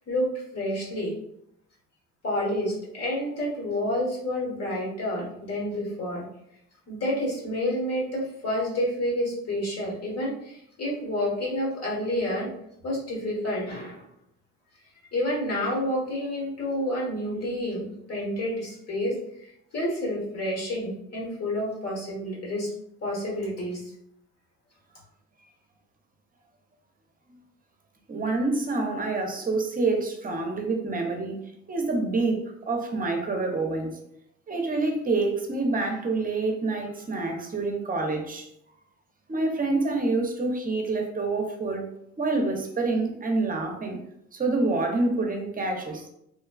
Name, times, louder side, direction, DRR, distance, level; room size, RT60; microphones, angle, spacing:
voice 1, 0.1-1.1 2.2-6.2 6.9-12.5 12.8-14.0 15.1-22.7 23.0-23.8, left 1 dB, 55° left, -3 dB, 1.4 m, -29 dB
voice 2, 28.1-31.4 31.7-34.0 34.5-38.5 39.3-41.9 42.2-44.0 44.3-46.1, right 3 dB, 30° right, 2 dB, 0.6 m, -27 dB
3.1 x 2.2 x 2.3 m, 0.76 s
cardioid pair, 90°, 30 cm